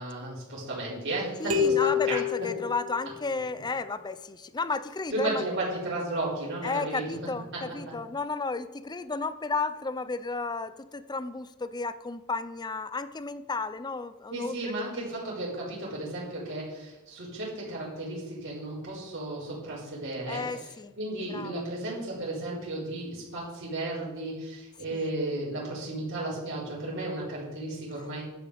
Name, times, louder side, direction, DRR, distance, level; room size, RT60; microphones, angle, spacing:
voice 1, 0.0-2.5 5.1-7.0 14.3-28.2, right 2 dB, 55° right, -12 dB, 4.7 m, -34 dB
voice 2, 1.4-5.4 6.6-14.8 20.3-20.9 21.3-21.6 24.9-25.1, left 3 dB, 20° left, 13 dB, 0.5 m, -33 dB
sound 1, 1.5-3.4, left 8 dB, 80° right, 2.0 m, -28 dB
11.5 x 9.8 x 5.1 m, 1.1 s
head